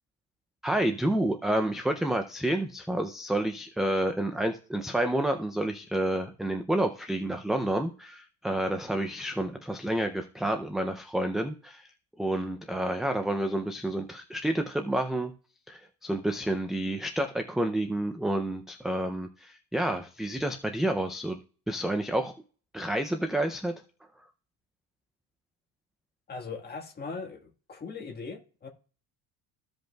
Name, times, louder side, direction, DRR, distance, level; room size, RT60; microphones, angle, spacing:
voice 1, 0.6-11.9 12.2-15.3 15.7-21.4 21.7-22.3 22.7-23.7, right 1 dB, ahead, 0.4 m, -29 dB
voice 2, 26.3-28.7, left 4 dB, 25° left, 1.6 m, -40 dB
15.0 x 5.2 x 2.3 m
cardioid pair, 145°, 38 cm